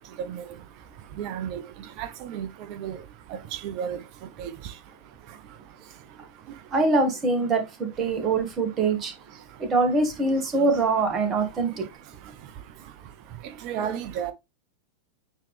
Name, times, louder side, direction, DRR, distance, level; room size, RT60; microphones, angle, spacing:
voice 1, 1.2-1.6 2.0-3.0 3.5-4.0 4.4-4.5 13.6-14.3, right 8 dB, 45° right, 0.8 m, -32 dB
voice 2, 6.7-9.1 9.6-11.9, right 3 dB, 25° right, 1.9 m, -23 dB
8.9 x 3.3 x 3.3 m
figure-of-eight pair, 90°, 0 cm